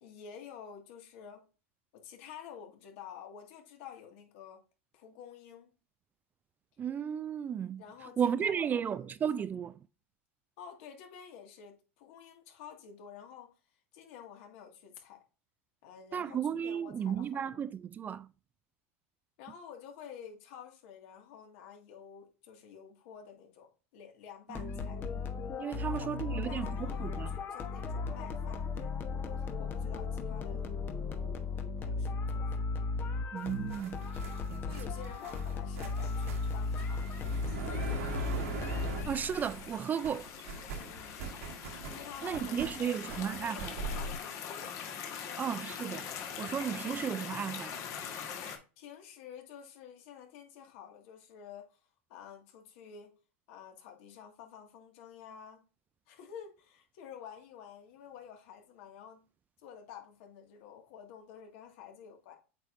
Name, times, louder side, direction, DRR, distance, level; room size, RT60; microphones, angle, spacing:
voice 1, 0.0-1.5 1.9-4.6 4.9-5.7 7.8-9.1 10.6-13.5 13.9-15.2 15.8-17.6 19.4-25.0 25.8-30.6 31.8-32.5 34.6-37.4 40.7-41.2 41.9-44.6 45.1-45.4 48.8-51.8 52.1-53.1 53.5-55.6 56.1-59.3 59.6-62.4, left 8 dB, 65° left, 1.9 m, -50 dB
voice 2, 6.8-7.8 8.2-9.8 16.1-18.3 24.5-24.7 25.6-27.3 33.3-34.0 34.5-34.7 39.1-40.3 42.2-43.8 45.4-46.1 46.4-47.8, right 8 dB, 25° right, 0.3 m, -34 dB
sound 1, 24.6-39.5, left 4 dB, 30° left, 1.0 m, -36 dB
sound 2, 33.4-39.8 40.0-44.2, right 3 dB, 80° right, 2.0 m, -42 dB
sound 3, 35.7-48.6, left 7 dB, 45° left, 1.5 m, -43 dB
8.2 x 4.6 x 2.6 m
hypercardioid pair, 110°, 7 cm